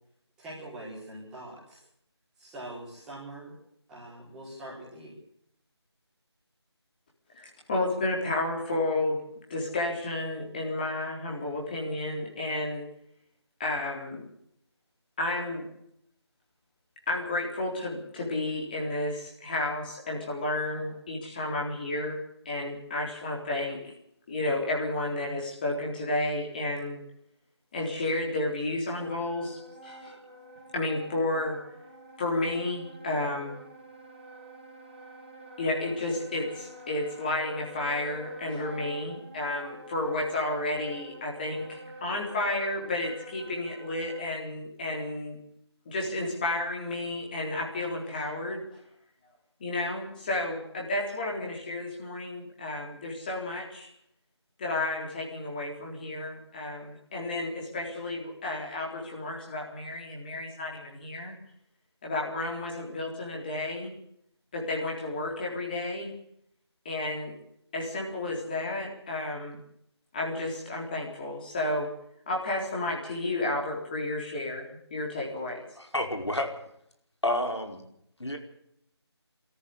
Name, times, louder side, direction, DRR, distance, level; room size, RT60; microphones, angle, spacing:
voice 1, 0.4-1.8 2.4-3.5 3.9-5.1, right 1 dB, 5° right, -9 dB, 4.5 m, -43 dB
voice 2, 7.3-12.9 13.6-14.3 15.2-15.7 17.1-23.8 24.3-27.0 27.7-30.2 30.7-31.6 32.2-33.6 35.6-45.4 45.9-48.6 49.6-53.9 54.6-61.3 62.0-63.9 64.5-66.1 66.9-67.3 67.7-69.6 70.1-71.9 72.3-75.6, left 2 dB, 20° left, -2 dB, 3.8 m, -32 dB
Wind instrument woodwind instrument, 28.8-44.3, right 2 dB, 25° right, 2.6 m, -47 dB
voice 3, 75.7-76.5 77.2-77.8 78.2-78.4, left 1 dB, 80° left, 4 dB, 5.0 m, -29 dB
23.0 x 13.5 x 8.3 m, 0.72 s
figure-of-eight pair, 165°, 14 cm